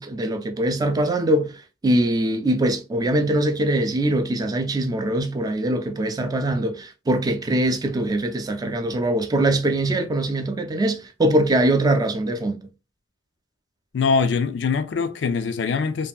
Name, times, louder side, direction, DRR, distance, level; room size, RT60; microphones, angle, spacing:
voice 1, 0.0-12.7, right 1 dB, 20° right, 0.3 m, -22 dB
voice 2, 13.9-16.1, left 5 dB, 75° left, 0.4 m, -23 dB
2.8 x 2.6 x 2.2 m
head